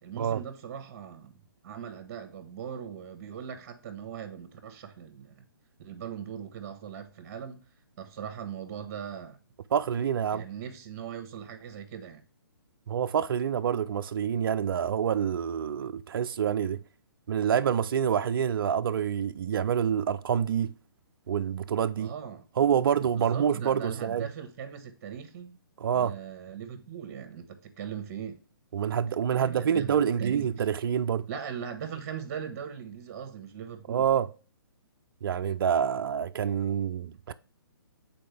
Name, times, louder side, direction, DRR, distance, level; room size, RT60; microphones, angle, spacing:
voice 1, 0.0-5.4 5.8-7.7 8.0-9.4 10.3-12.2 22.0-22.4 23.1-25.6 25.9-28.4 29.3-30.5 31.3-34.1, right 8 dB, 40° right, 1.2 m, -40 dB
voice 2, 9.7-10.4 12.9-16.8 17.3-20.7 21.3-22.1 22.6-24.3 25.8-26.1 28.7-31.3 33.9-34.3 35.2-37.3, right 8 dB, 65° right, 0.4 m, -27 dB
7.7 x 4.3 x 3.3 m
hypercardioid pair, 140°, 13 cm